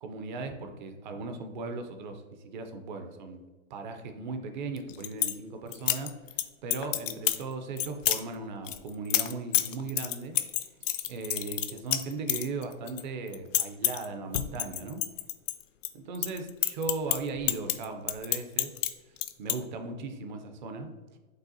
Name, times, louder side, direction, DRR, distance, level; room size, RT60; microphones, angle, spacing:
voice 1, 0.0-3.4 3.7-6.1 6.6-10.3 11.1-15.0 15.9-18.7 19.4-21.2, right 3 dB, 35° right, 6 dB, 0.5 m, -37 dB
sound 1, 4.8-5.3 5.7-6.4 6.7-7.4 7.8-8.2 8.7-13.0 13.3-14.0 14.3-15.9 16.1-18.9 19.2-19.5, left 12 dB, 70° left, 0.5 m, -28 dB
5.4 x 3.4 x 2.6 m, 1.2 s
hypercardioid pair, 140°, 40 cm